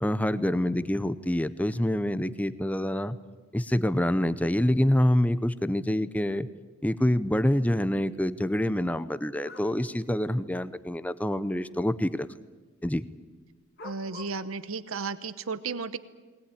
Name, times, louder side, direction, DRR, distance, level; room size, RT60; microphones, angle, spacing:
voice 1, 0.0-3.2 3.5-6.5 6.8-12.3 12.8-13.0, left 1 dB, 5° left, 14 dB, 0.7 m, -26 dB
sound 1, 9.4-9.7 11.0-11.1 13.8-14.4, left 4 dB, 45° left, 2.5 m, -45 dB
voice 2, 13.8-16.0, right 4 dB, 65° right, 14 dB, 0.9 m, -34 dB
20.5 x 19.5 x 9.9 m, 1.3 s
head